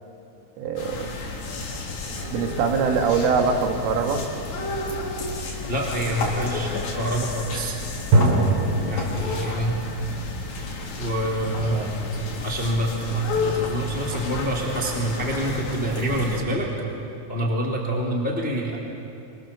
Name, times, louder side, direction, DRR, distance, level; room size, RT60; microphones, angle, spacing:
voice 1, 0.6-1.1 2.3-4.2 11.7-11.9, right 5 dB, 75° right, 4 dB, 4.3 m, -23 dB
sound 1, 0.8-16.4, left 3 dB, 60° left, 5.4 m, -31 dB
sound 2, 2.1-3.4 8.1-10.0, right 2 dB, 55° right, 4.6 m, -24 dB
voice 2, 5.7-7.7 8.9-9.8 11.0-11.8 12.4-16.7 17.3-18.8, right 1 dB, 20° left, -2 dB, 1.7 m, -26 dB
25.5 x 25.0 x 7.4 m, 2.7 s
omnidirectional pair, 5.9 m